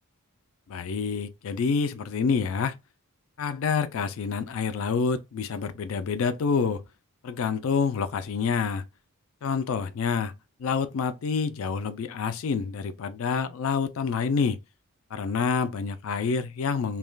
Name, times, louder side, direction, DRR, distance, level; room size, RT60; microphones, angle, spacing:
voice 1, 0.7-2.7 3.4-6.8 7.2-8.8 9.4-10.3 10.6-14.6 15.1-17.0, left 5 dB, 65° left, 0.4 m, -27 dB
3.3 x 2.2 x 2.3 m
head